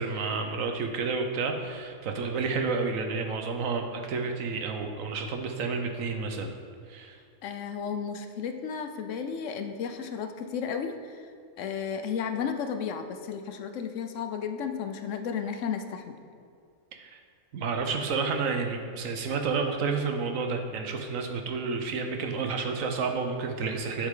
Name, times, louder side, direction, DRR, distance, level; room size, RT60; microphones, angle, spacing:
voice 1, 0.0-6.5 6.9-7.2 17.0-17.2 17.5-24.1, right 4 dB, 75° right, 4 dB, 1.2 m, -30 dB
voice 2, 7.4-11.2 11.6-16.2, left 7 dB, 70° left, 7 dB, 0.9 m, -33 dB
7.9 x 7.0 x 3.7 m, 2.3 s
omnidirectional pair, 1.4 m